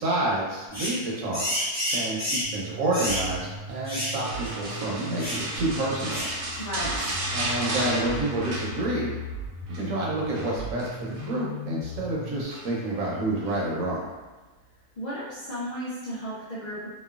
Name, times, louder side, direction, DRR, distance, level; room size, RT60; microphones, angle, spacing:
voice 1, 0.0-1.4 1.9-6.2 6.5-6.6 7.3-9.1 9.7-14.1, right 1 dB, 65° right, -5 dB, 1.0 m, -29 dB
sound 1, 0.7-1.0 1.3-2.5 2.9-3.3 3.8-4.2 4.4-4.6 5.2-5.5 6.1-6.4 7.0-7.2, equal, 20° left, 1.0 m, -30 dB
sound 2, 2.4-12.4, right 1 dB, 90° left, 1.3 m, -38 dB
sound 3, 4.2-9.3 9.5-9.9 10.3-11.4 12.5-12.9 13.5-13.6, right 1 dB, 85° right, 1.1 m, -33 dB
voice 2, 6.6-6.9 15.0-16.9, equal, 70° left, -10 dB, 0.4 m, -34 dB
2.9 x 2.3 x 2.4 m, 1.3 s
omnidirectional pair, 1.6 m